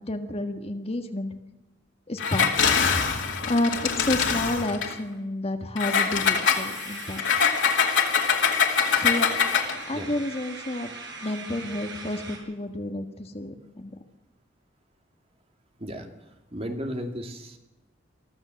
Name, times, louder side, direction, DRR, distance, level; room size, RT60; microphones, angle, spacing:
voice 1, 0.0-1.3 2.1-2.5 3.5-7.2 8.9-9.4 9.8-10.9 11.2-13.9, left 1 dB, 35° left, 7 dB, 1.6 m, -30 dB
Engine, 2.2-4.9 5.8-9.8, left 6 dB, 85° left, 2.8 m, -24 dB
sound 1, 6.2-12.4, right 3 dB, 70° right, 6.2 m, -41 dB
voice 2, 16.5-17.6, equal, 35° right, 5 dB, 2.5 m, -34 dB
23.5 x 14.5 x 7.7 m, 0.97 s
head